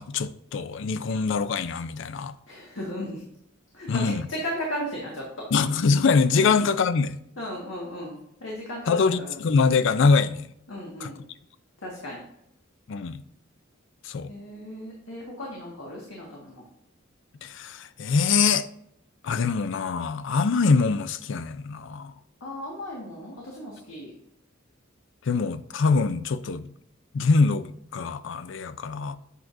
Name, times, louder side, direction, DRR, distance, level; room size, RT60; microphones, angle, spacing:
voice 1, 0.0-2.3 3.9-4.2 5.5-7.2 8.9-10.4 11.0-11.1 12.9-13.2 14.0-14.3 17.4-18.7 19.2-22.1 25.3-26.7 27.1-29.2, left 4 dB, 65° left, 0.4 m, -24 dB
voice 2, 2.5-3.2 3.7-5.2 6.3-6.5 7.4-9.4 10.7-11.2 11.8-12.2 14.2-16.6 22.4-24.1, equal, 85° left, 1.6 m, -36 dB
8.1 x 6.0 x 2.6 m
head